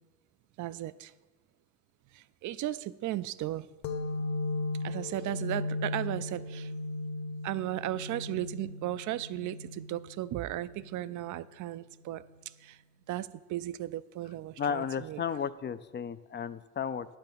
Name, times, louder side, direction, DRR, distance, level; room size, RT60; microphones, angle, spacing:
voice 1, 0.6-1.1 2.1-3.7 4.8-6.7 7.4-12.2 12.6-12.8 13.1-15.2, right 14 dB, 75° right, 15 dB, 0.5 m, -36 dB
sound 1, 3.8-11.1, left 2 dB, 65° left, 0.9 m, -37 dB
voice 2, 14.6-17.1, left 7 dB, 35° left, 14 dB, 0.4 m, -33 dB
9.8 x 5.9 x 6.8 m, 1.3 s
cardioid pair, 90°, 30 cm